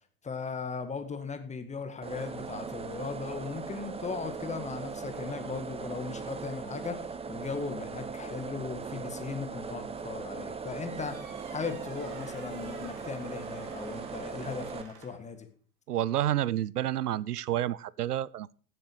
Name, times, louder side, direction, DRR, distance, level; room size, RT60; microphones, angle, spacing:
voice 1, 0.2-11.2 11.5-15.5, left 5 dB, 15° left, 1.8 m, -38 dB
sound 1, 2.0-14.8, right 5 dB, 15° right, 1.0 m, -39 dB
sound 2, 10.8-15.3, right 5 dB, 40° right, 2.7 m, -51 dB
voice 2, 15.9-18.5, right 12 dB, 85° right, 0.5 m, -29 dB
16.0 x 7.6 x 4.8 m
figure-of-eight pair, 95°, 45 cm